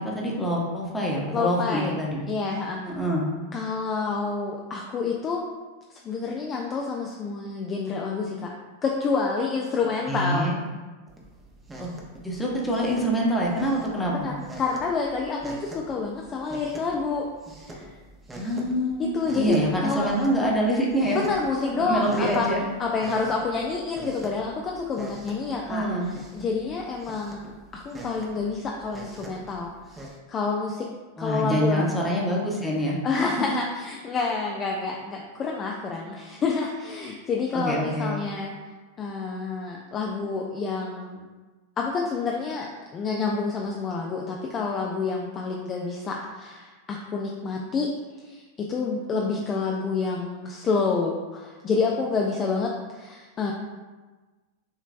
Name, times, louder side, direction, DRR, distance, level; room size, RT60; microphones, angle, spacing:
voice 1, 0.0-2.2 2.8-3.3 10.1-10.6 11.8-11.9 12.2-14.3 18.3-21.2 21.6-22.6 25.6-26.1 31.2-33.0 37.5-38.2, equal, 10° left, -3 dB, 1.1 m, -25 dB
voice 2, 1.3-2.0 2.3-2.8 3.5-5.4 5.9-8.5 8.8-10.5 14.0-17.3 17.7-17.8 19.0-20.1 21.1-22.5 22.8-25.8 26.3-29.7 30.3-30.9 31.2-31.9 33.0-38.5 39.0-41.2 41.8-47.9 48.2-53.5, left 4 dB, 25° left, 0 dB, 0.5 m, -28 dB
sound 1, 11.1-30.2, right 1 dB, 15° right, 0.8 m, -44 dB
6.4 x 3.1 x 2.5 m, 1.3 s
figure-of-eight pair, 90°, 0 cm